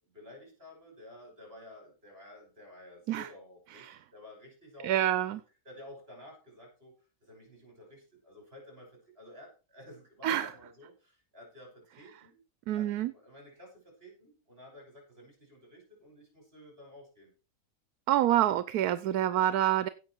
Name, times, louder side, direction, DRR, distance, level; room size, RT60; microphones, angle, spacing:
voice 1, 0.0-5.0 5.6-6.9 7.2-12.4 12.7-17.3, left 1 dB, 40° right, 1 dB, 5.9 m, -52 dB
voice 2, 4.8-5.4 10.2-10.5 12.7-13.1 18.1-19.9, right 12 dB, 80° right, 14 dB, 1.2 m, -27 dB
16.0 x 6.1 x 4.5 m, 0.33 s
omnidirectional pair, 1.6 m